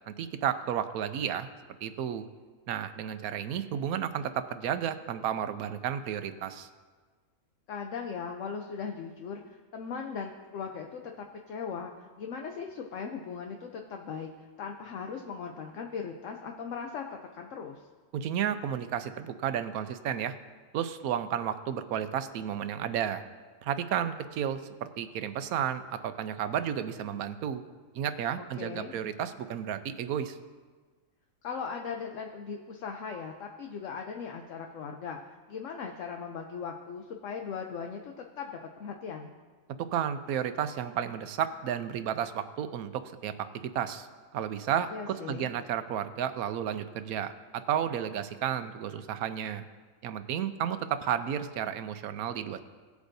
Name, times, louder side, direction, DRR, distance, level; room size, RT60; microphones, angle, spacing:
voice 1, 0.1-1.5 1.8-2.3 2.7-6.7 18.1-20.3 20.7-23.2 23.6-27.6 27.9-30.4 39.9-43.3 43.6-44.1 44.3-49.6 50.0-52.6, right 9 dB, 80° right, 11 dB, 1.1 m, -32 dB
voice 2, 7.7-17.9 28.6-29.0 31.4-35.2 35.5-39.3 44.9-45.5, left 6 dB, 65° left, 3 dB, 1.0 m, -39 dB
18.0 x 8.1 x 2.7 m, 1.4 s
omnidirectional pair, 1.5 m